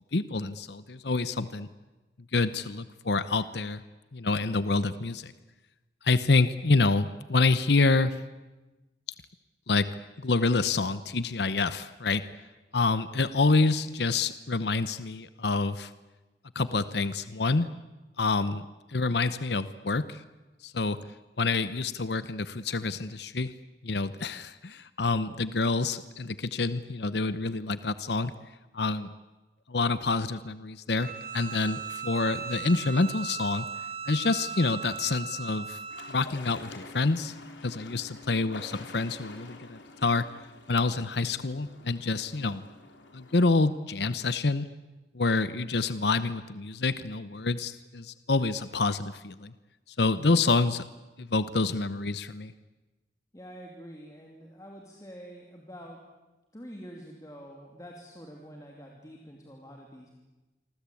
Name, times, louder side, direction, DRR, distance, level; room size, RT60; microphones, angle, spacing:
voice 1, 0.1-1.7 2.3-3.8 4.1-5.3 6.0-8.1 9.7-9.9 10.2-12.2 12.7-15.9 16.5-17.7 18.2-20.2 20.6-21.0 21.4-23.5 23.8-28.3 28.7-29.1 29.7-33.6 34.1-35.8 36.1-37.3 37.6-40.3 40.7-42.6 43.1-44.7 45.1-49.5 50.0-50.8 51.2-52.5, left 3 dB, 65° left, 14 dB, 0.9 m, -27 dB
Bowed string instrument, 31.0-36.2, right 6 dB, 45° right, 4.3 m, -38 dB
sound 1, 35.9-43.6, left 3 dB, 85° left, 3.5 m, -48 dB
voice 2, 53.3-56.0 56.5-60.1, equal, 20° left, 0 dB, 2.8 m, -46 dB
27.0 x 24.0 x 8.5 m, 1.1 s
head